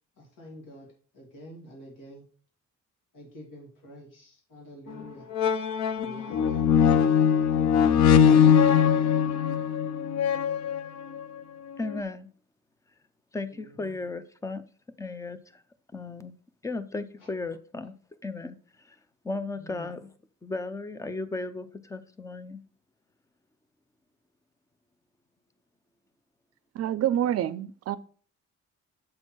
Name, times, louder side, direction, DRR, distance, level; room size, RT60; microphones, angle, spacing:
voice 1, 0.2-0.9 1.1-2.3 3.1-5.3 6.0-6.7 7.5-8.1 13.5-14.0 19.6-19.9, equal, 80° left, 2.6 m, -47 dB
sound 1, 4.9-5.0 5.3-11.2 11.9-12.0, left 8 dB, 60° left, 0.5 m, -21 dB
voice 2, 11.8-12.3 13.3-14.6 15.0-15.6 15.9-16.3 16.6-18.0 18.2-19.0 19.2-20.1 20.4-22.6, left 3 dB, 10° left, 0.4 m, -35 dB
voice 3, 26.7-28.0, right 11 dB, 50° right, 0.5 m, -27 dB
7.5 x 4.5 x 4.4 m
cardioid pair, 170°, 32 cm